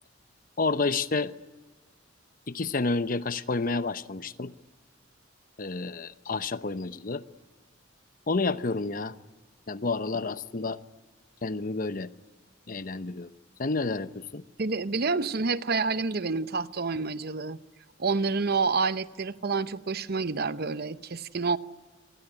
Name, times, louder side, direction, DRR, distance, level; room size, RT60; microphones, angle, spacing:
voice 1, 0.6-1.3 2.5-4.5 5.6-7.2 8.3-9.1 9.7-10.8 11.4-12.1 12.7-13.3 13.6-14.4, left 3 dB, 45° left, 0.8 m, -30 dB
voice 2, 14.6-17.6 18.0-21.6, right 4 dB, 50° right, 0.8 m, -28 dB
28.0 x 20.5 x 10.0 m
head